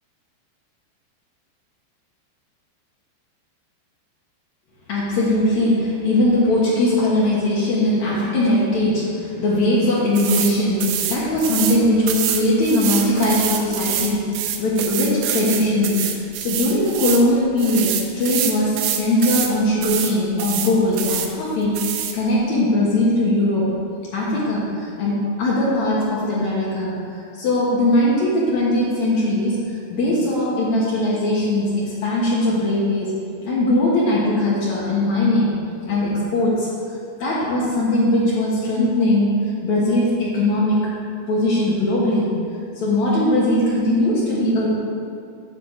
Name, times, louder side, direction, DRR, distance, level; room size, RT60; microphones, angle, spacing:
voice 1, 4.9-14.2 14.6-23.7 24.1-33.1 33.4-35.5 35.8-36.7 37.2-39.3 39.6-40.8 41.3-42.3 42.7-44.7, left 1 dB, 75° left, -7 dB, 1.6 m, -20 dB
sound 1, 10.2-10.5 10.8-11.8 12.1-17.3 17.6-19.5 19.8-20.1 20.4-21.3 21.8-22.1, right 10 dB, 90° right, 2.9 m, -25 dB
10.0 x 3.8 x 7.1 m, 2.4 s
omnidirectional pair, 5.2 m